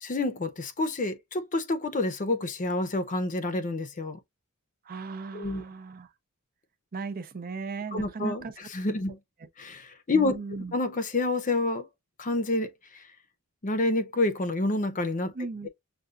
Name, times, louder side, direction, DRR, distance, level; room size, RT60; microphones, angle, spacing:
voice 1, 0.0-4.2 5.3-5.6 7.9-9.2 9.6-10.4 10.7-11.9 12.2-12.7 13.6-15.3, left 2 dB, 35° left, 0.6 m, -28 dB
voice 2, 4.8-6.1 6.9-8.5 10.1-10.8 15.3-15.7, right 4 dB, 40° right, 0.5 m, -37 dB
6.7 x 2.3 x 2.3 m
head